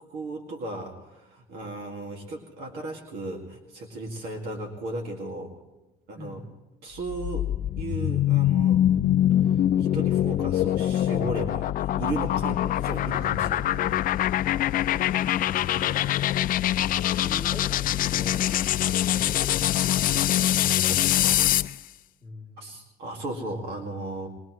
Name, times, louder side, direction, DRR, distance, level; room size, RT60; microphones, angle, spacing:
voice 1, 0.1-5.6 6.1-6.4 6.8-7.5 7.8-8.8 9.4-14.0 15.7-16.0 20.8-21.5 22.6-24.3, right 2 dB, 85° right, 1 dB, 2.1 m, -36 dB
voice 2, 6.2-6.5 16.7-18.4 22.2-22.8, left 1 dB, 20° right, -2 dB, 3.0 m, -44 dB
sound 1, 7.0-21.8, left 12 dB, 55° left, 0.4 m, -24 dB
22.5 x 20.0 x 3.1 m, 1.1 s
cardioid pair, 110°, 17 cm